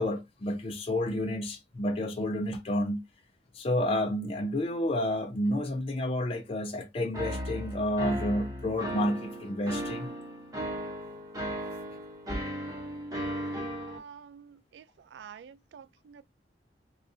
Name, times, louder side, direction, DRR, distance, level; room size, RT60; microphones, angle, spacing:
voice 1, 0.0-3.0 3.5-10.1 12.3-12.4, left 1 dB, 35° left, 0.6 m, -30 dB
sound 1, 7.1-14.0, equal, 20° right, 1.0 m, -36 dB
voice 2, 13.9-16.2, right 7 dB, 70° right, 0.3 m, -49 dB
3.9 x 2.4 x 2.5 m
head